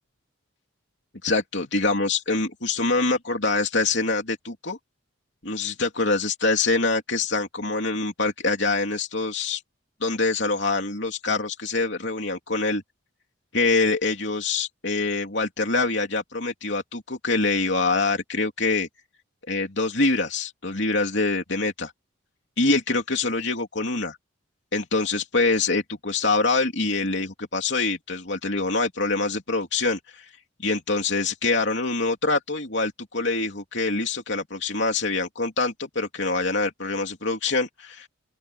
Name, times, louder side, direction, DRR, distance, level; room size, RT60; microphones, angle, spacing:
voice 1, 1.2-4.8 5.4-9.6 10.0-12.8 13.5-18.9 19.5-21.9 22.6-24.2 24.7-30.3 30.6-38.1, left 3 dB, 55° left, 3.3 m, -25 dB
open air
head